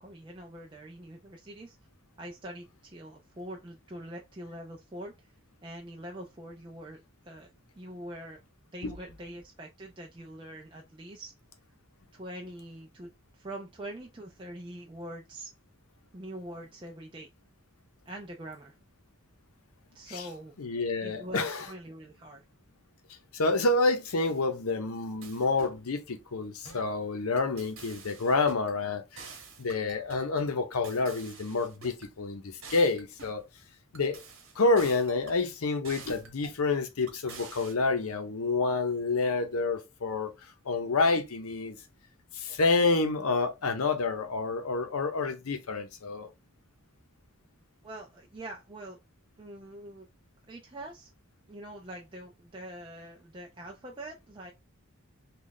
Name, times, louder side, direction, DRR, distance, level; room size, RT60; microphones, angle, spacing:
voice 1, 0.0-1.8 2.2-5.3 5.6-8.4 8.7-11.3 12.1-15.5 16.1-17.3 18.1-18.8 19.9-20.6 21.0-22.4 47.8-49.0 49.4-50.1 50.5-51.1 51.5-54.5, right 1 dB, 20° right, 0.4 m, -44 dB
voice 2, 20.6-21.7 23.3-29.2 29.6-32.4 32.7-33.4 33.9-34.2 34.6-40.3 40.6-41.8 42.3-46.3, left 3 dB, 80° left, 0.7 m, -28 dB
sound 1, 25.2-25.8 26.6-26.9 27.4-28.8 29.2-30.3 30.8-32.1 32.6-33.4 33.9-35.4 35.8-36.6 37.1-37.7, right 5 dB, 65° right, 1.0 m, -48 dB
3.2 x 2.4 x 3.8 m
head